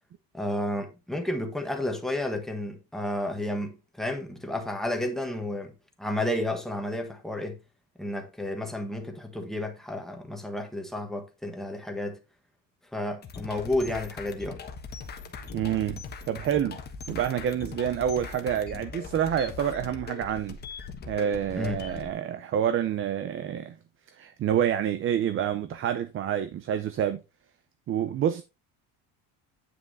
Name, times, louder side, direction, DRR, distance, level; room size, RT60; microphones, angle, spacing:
voice 1, 0.3-7.6 8.0-12.2 12.9-14.6 21.5-21.8, left 1 dB, ahead, 1.5 m, -31 dB
sound 1, 13.2-22.1, left 5 dB, 25° left, 1.3 m, -40 dB
voice 2, 15.5-16.8 17.1-20.6 21.1-23.8 24.1-27.2 27.9-28.4, right 9 dB, 35° right, 0.6 m, -28 dB
9.6 x 5.8 x 4.1 m
cardioid pair, 170°, 37 cm